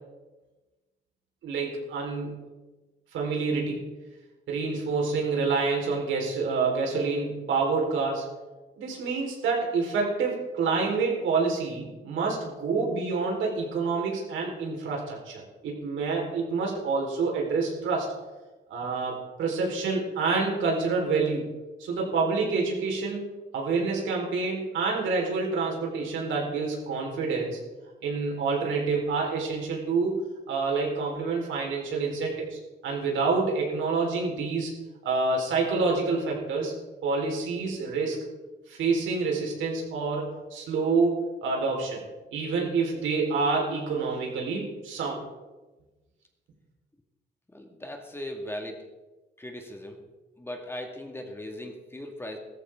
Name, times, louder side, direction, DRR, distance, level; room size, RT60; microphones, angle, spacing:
voice 1, 1.4-2.4 3.1-3.8 4.5-8.2 8.8-18.1 18.7-21.5 21.8-23.2 23.5-27.6 28.0-30.2 30.5-34.7 35.0-36.7 37.0-38.2 38.7-42.0 42.3-45.2, right 4 dB, 80° right, -1 dB, 4.4 m, -27 dB
voice 2, 47.5-48.8 49.4-50.0 50.4-52.4, left 1 dB, 10° left, 3 dB, 2.1 m, -38 dB
15.5 x 13.5 x 3.8 m, 1.2 s
cardioid pair, 90°, 20 cm